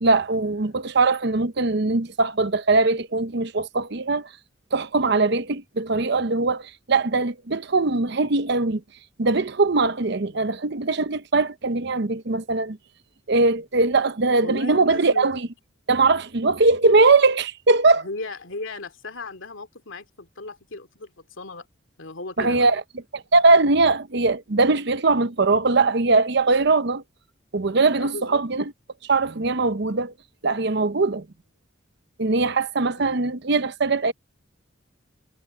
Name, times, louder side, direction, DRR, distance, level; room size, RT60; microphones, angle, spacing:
voice 1, 0.0-4.3 4.7-8.8 9.2-12.8 13.3-15.5 15.9-18.0 22.4-22.8 23.1-27.0 27.5-28.6 29.1-30.1 30.4-31.2 32.2-34.1, right 3 dB, 60° right, 0.9 m, -21 dB
voice 2, 10.0-10.6 14.4-15.3 18.0-21.7 22.0-22.6 28.0-28.4 33.0-33.2, left 3 dB, 90° left, 2.5 m, -37 dB
head